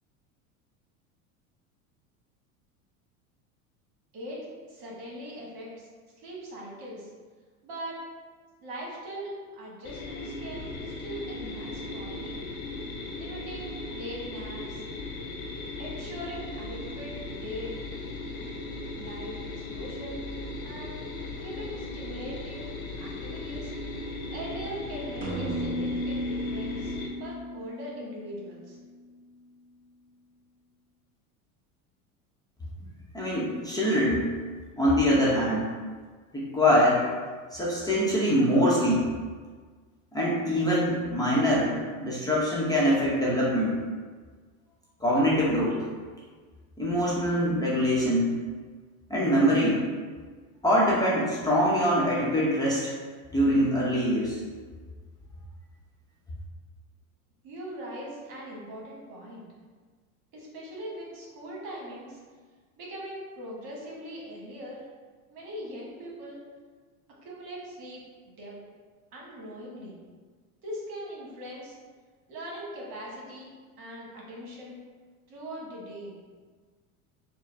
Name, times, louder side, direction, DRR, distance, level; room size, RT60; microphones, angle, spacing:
voice 1, 4.1-5.9 6.1-7.1 7.6-8.0 8.6-12.4 13.1-14.8 15.8-17.7 18.9-20.2 20.6-21.0 21.4-23.7 24.3-28.8 57.4-59.4 60.3-62.2 62.8-64.8 65.3-66.4 67.2-68.0 68.4-68.5 69.1-70.0 70.6-71.7 72.3-73.5 73.8-74.8 75.3-76.2, equal, 55° right, -4 dB, 1.5 m, -41 dB
sound 1, 9.8-27.1, left 2 dB, 70° left, 0.9 m, -37 dB
sound 2, 25.2-29.0, equal, 35° right, 0.8 m, -34 dB
voice 2, 33.1-34.3 34.8-35.7 36.3-37.1 37.5-39.1 40.1-43.8 45.0-45.8 46.8-48.4 49.1-49.8 50.6-52.9 53.3-54.3, equal, 10° left, -7 dB, 0.8 m, -24 dB
4.5 x 2.2 x 3.3 m, 1.5 s
hypercardioid pair, 95°, 43 cm